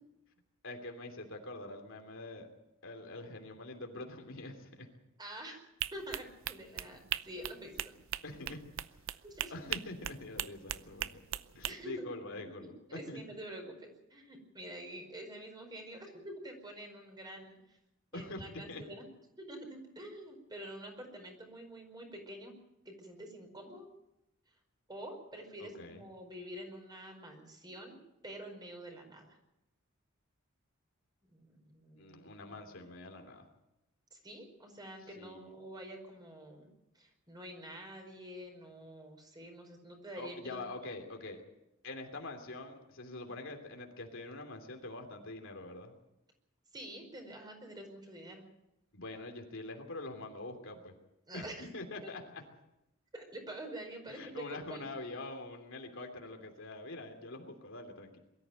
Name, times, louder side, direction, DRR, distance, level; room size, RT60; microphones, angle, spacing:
voice 1, 0.6-2.5 2.8-4.9 8.2-8.6 9.5-13.2 18.1-18.8 25.6-26.0 32.0-33.5 35.2-35.5 40.2-41.4 41.8-46.0 48.9-50.9 51.3-51.5 51.7-52.4 54.1-58.2, left 2 dB, 65° left, 4 dB, 3.0 m, -45 dB
voice 2, 5.2-5.6 5.9-7.8 9.2-9.7 11.6-12.1 12.6-17.8 18.1-19.0 19.4-22.5 22.8-23.9 24.9-28.0 28.2-29.4 31.3-32.3 34.1-40.6 46.7-48.4 51.3-51.7 52.0-52.1 53.1-54.9, right 1 dB, 20° right, 3 dB, 4.9 m, -47 dB
sound 1, 5.8-11.7, right 12 dB, 65° right, 0.6 m, -39 dB
22.0 x 13.5 x 9.1 m, 0.88 s
head